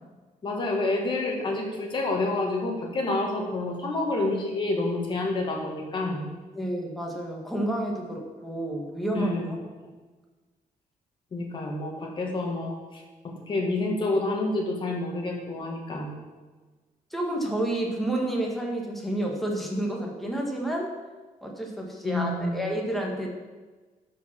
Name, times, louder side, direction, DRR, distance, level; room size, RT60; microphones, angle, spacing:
voice 1, 0.4-6.3 9.1-9.5 11.3-13.0 13.5-16.1 22.0-22.6, left 2 dB, 35° left, 0 dB, 2.0 m, -28 dB
voice 2, 6.5-9.6 17.1-20.9 21.4-23.3, right 1 dB, ahead, -1 dB, 1.5 m, -30 dB
12.0 x 5.3 x 6.0 m, 1.3 s
wide cardioid pair, 175°, 15 cm